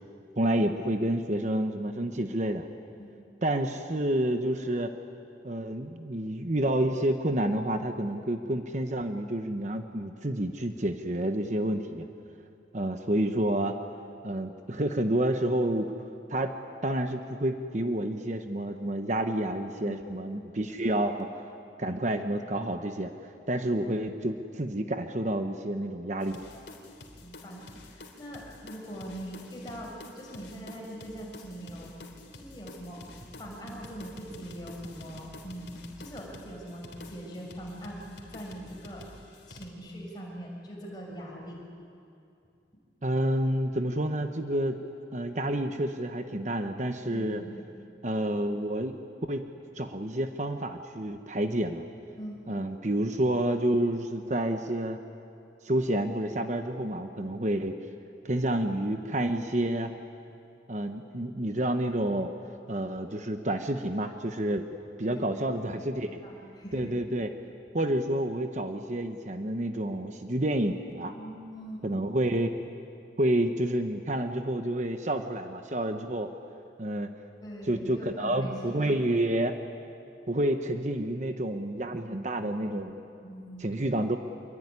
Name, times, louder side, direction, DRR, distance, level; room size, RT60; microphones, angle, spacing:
voice 1, 0.4-2.7 3.4-4.9 5.4-12.1 12.7-13.8 14.2-15.9 16.3-16.5 16.8-21.3 21.8-23.1 23.5-26.4 43.0-44.8 45.1-47.4 48.0-48.9 49.3-49.5 49.7-51.8 52.5-55.0 55.6-57.8 58.2-59.9 60.7-62.3 62.7-64.6 65.0-66.1 66.7-67.3 67.7-71.2 71.8-72.5 73.2-76.3 76.8-77.1 77.7-79.5 80.3-83.0 83.6-84.2, right 1 dB, 40° right, 6 dB, 1.0 m, -29 dB
sound 1, 26.2-39.7, left 2 dB, 70° left, 3.3 m, -49 dB
voice 2, 27.2-31.9 32.3-39.1 39.5-41.6 47.0-47.6 52.2-52.4 65.0-65.6 66.0-67.0 71.1-71.9 77.4-78.9 83.2-83.6, right 1 dB, 20° left, -2 dB, 6.7 m, -42 dB
26.0 x 23.5 x 9.7 m, 2.6 s
head